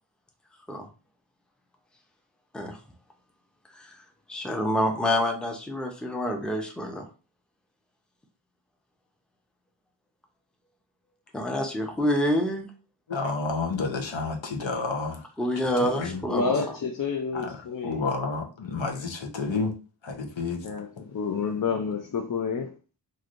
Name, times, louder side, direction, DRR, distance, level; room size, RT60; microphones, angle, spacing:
voice 1, 4.3-7.0 11.3-12.7 15.4-16.6, left 1 dB, ahead, 0.6 m, -27 dB
voice 2, 13.1-15.2 15.8-16.2 17.4-17.5 17.8-19.7 20.0-20.6, left 4 dB, 80° left, 0.8 m, -30 dB
voice 3, 16.3-18.1 20.4-22.7, left 5 dB, 50° left, 0.5 m, -29 dB
3.1 x 2.6 x 2.5 m
wide cardioid pair, 45°, 45 cm